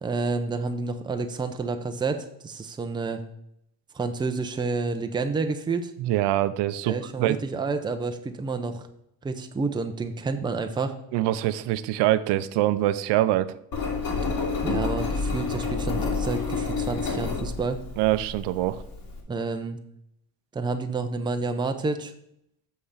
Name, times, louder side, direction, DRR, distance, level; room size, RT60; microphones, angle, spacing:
voice 1, 0.0-3.2 3.9-5.9 6.8-8.9 9.2-10.9 14.6-17.8 19.3-19.8 20.5-22.1, right 3 dB, 10° right, 6 dB, 0.5 m, -29 dB
voice 2, 6.0-7.4 11.1-13.6 18.0-18.8, right 14 dB, 80° right, 14 dB, 0.7 m, -24 dB
Engine, 13.7-19.2, left 4 dB, 55° left, 2.3 m, -29 dB
6.7 x 5.6 x 6.5 m, 0.75 s
cardioid pair, 155°, 41 cm